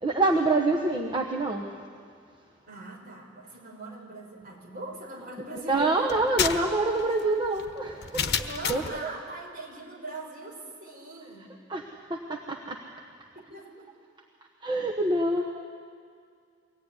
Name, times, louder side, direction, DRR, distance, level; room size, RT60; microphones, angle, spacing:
voice 1, 0.0-1.7 5.7-8.3 8.7-9.1 11.7-12.8 14.6-15.5, right 2 dB, 25° right, 0 dB, 1.2 m, -26 dB
voice 2, 2.7-6.2 8.4-11.5 13.4-13.9, right 2 dB, 45° right, -1 dB, 5.4 m, -41 dB
sound 1, 6.1-9.0, left 7 dB, 55° left, 1.1 m, -30 dB
23.5 x 17.0 x 9.9 m, 2.2 s
head